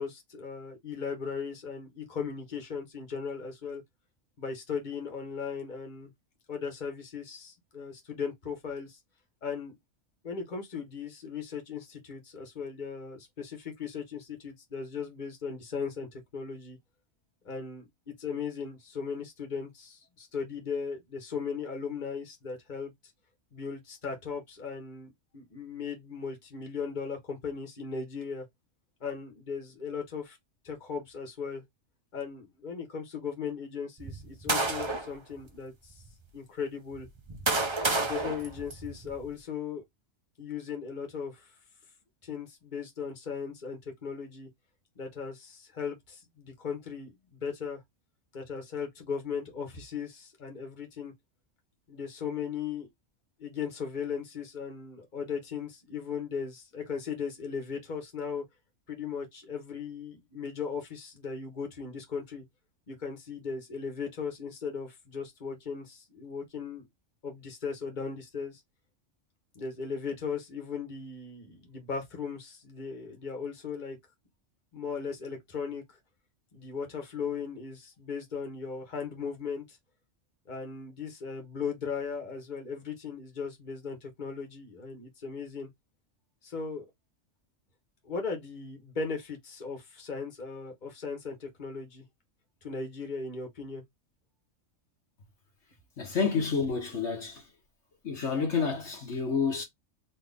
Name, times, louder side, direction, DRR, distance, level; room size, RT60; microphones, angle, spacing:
voice 1, 0.0-3.8 4.4-6.1 6.5-9.0 9.4-9.8 10.2-16.8 17.4-22.9 23.5-28.5 29.0-30.4 30.6-31.6 32.1-36.0 36.3-37.1 37.9-39.8 40.4-41.5 42.2-44.5 44.9-47.8 48.3-51.1 51.9-52.9 53.4-58.4 58.9-62.4 62.9-66.9 67.2-68.6 69.5-74.0 74.7-76.0 76.5-79.8 80.5-85.7 86.4-86.9 88.0-92.0 92.6-93.8, left 5 dB, 35° left, 1.5 m, -37 dB
sound 1, 34.0-35.1 35.9-36.0 36.9-39.3, right 3 dB, 25° right, 0.7 m, -30 dB
voice 2, 96.0-97.4 98.0-99.6, left 5 dB, 65° left, 1.5 m, -29 dB
4.2 x 3.1 x 3.5 m
omnidirectional pair, 1.3 m